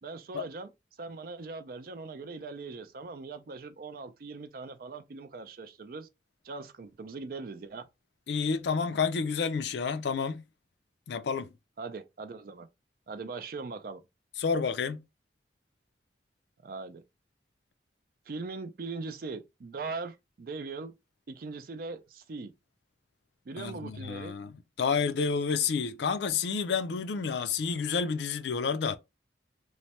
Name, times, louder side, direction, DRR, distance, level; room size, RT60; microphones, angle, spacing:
voice 1, 0.0-0.7 1.0-6.1 6.4-7.8 11.8-12.7 13.1-14.0 16.6-17.0 18.3-21.0 21.3-22.5 23.5-24.4, right 4 dB, 50° right, 0.4 m, -40 dB
voice 2, 8.3-10.4 11.1-11.5 14.4-15.0 23.6-24.5 24.8-29.0, left 5 dB, 75° left, 0.4 m, -29 dB
3.1 x 2.1 x 2.8 m
head